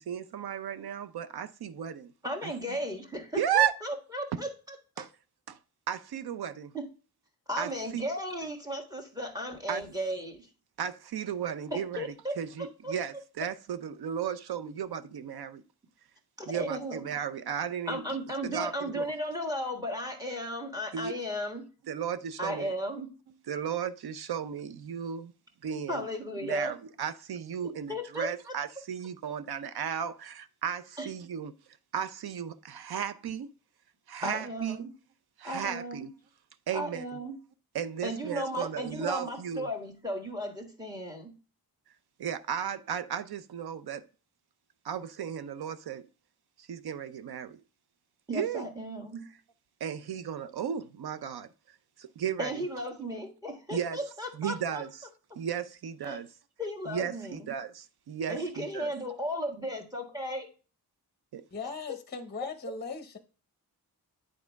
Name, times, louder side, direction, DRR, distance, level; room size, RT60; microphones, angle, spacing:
voice 1, 0.0-2.1 2.4-2.8 3.4-3.7 4.3-4.4 5.0-5.1 5.5-5.6 5.9-6.7 7.6-8.1 9.7-9.8 10.8-15.6 16.5-18.0 18.5-19.1 20.9-21.2 21.9-22.7 23.5-25.3 25.6-26.1 26.4-31.5 31.9-33.5 34.1-34.8 35.4-36.1 36.7-37.1 37.7-39.7 42.2-44.0 44.8-46.1 46.6-47.6 48.3-48.6 49.8-51.5 52.0-52.6 53.7-54.0 54.3-54.9 55.4-56.3 56.9-58.9 61.3-61.4, right 8 dB, 80° right, 0.7 m, -34 dB
voice 2, 2.2-5.0 6.7-6.9 7.5-10.5 11.7-12.4 12.8-12.9 16.4-17.0 17.9-21.7 22.4-23.2 25.9-26.8 27.9-28.5 31.0-31.1 34.2-34.9 35.4-36.1 36.7-37.4 38.0-41.4 48.3-49.3 52.4-54.8 56.0-56.2 56.6-57.5 58.3-60.5, equal, 10° right, 1.4 m, -35 dB
voice 3, 61.5-63.2, left 4 dB, 25° left, 0.7 m, -38 dB
9.6 x 4.2 x 3.5 m
wide cardioid pair, 170°, 37 cm